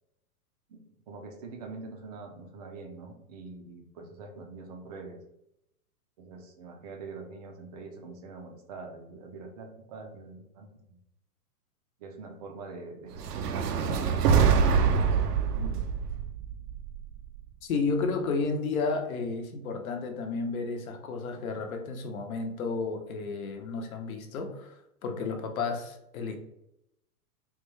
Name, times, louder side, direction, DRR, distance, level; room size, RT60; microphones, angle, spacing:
voice 1, 0.7-5.2 6.2-10.7 12.0-15.9, right 3 dB, 30° right, 3 dB, 0.4 m, -44 dB
sound 1, 13.1-17.4, right 6 dB, 85° right, 0.6 m, -25 dB
voice 2, 17.6-26.4, left 4 dB, 65° left, 5 dB, 0.9 m, -32 dB
3.7 x 2.3 x 3.1 m, 0.81 s
hypercardioid pair, 130°, 46 cm